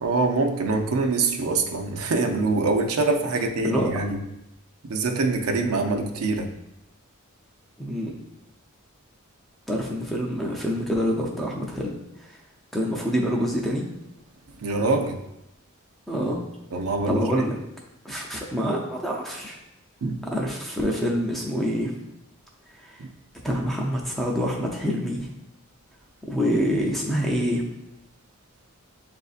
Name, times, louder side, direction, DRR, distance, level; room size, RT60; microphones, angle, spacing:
voice 1, 0.0-4.2 4.8-6.5 14.6-15.2 16.7-17.4 20.0-20.2 23.0-23.1, right 3 dB, 75° right, 4 dB, 0.5 m, -24 dB
voice 2, 3.6-4.0 7.8-8.2 9.7-11.9 12.2-12.4 12.7-13.8 16.1-16.4 17.1-17.6 18.0-19.6 20.3-21.9 22.8-23.0 23.4-25.3 26.3-27.6, equal, ahead, -2 dB, 0.4 m, -26 dB
7.2 x 2.6 x 2.4 m, 0.87 s
head